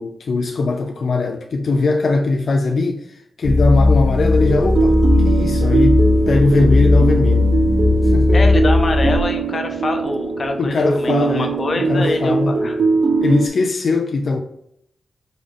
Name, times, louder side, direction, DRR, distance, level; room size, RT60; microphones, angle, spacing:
voice 1, 0.0-5.0 5.2-6.0 6.3-7.5 8.0-8.4 10.6-11.5 11.8-12.5 13.2-14.4, left 3 dB, 65° left, 0.4 m, -20 dB
sound 1, 3.4-9.1, left 2 dB, 5° right, 0.6 m, -16 dB
sound 2, 4.4-13.5, right 4 dB, 60° right, 0.4 m, -20 dB
voice 2, 8.3-12.8, left 2 dB, 50° left, 0.8 m, -25 dB
3.8 x 3.7 x 3.3 m
cardioid pair, 85°, 0 cm